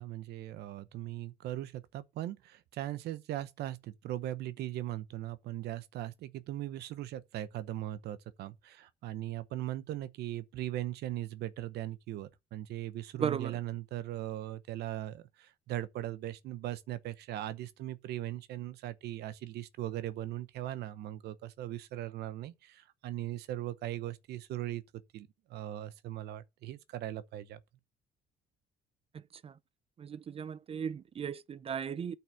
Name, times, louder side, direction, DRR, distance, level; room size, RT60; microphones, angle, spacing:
voice 1, 0.0-27.6, right 13 dB, 75° right, 0.9 m, -39 dB
voice 2, 13.2-13.6 29.1-29.6 30.0-32.2, right 7 dB, 35° right, 0.5 m, -37 dB
9.0 x 5.8 x 6.3 m
cardioid pair, 110°, 17 cm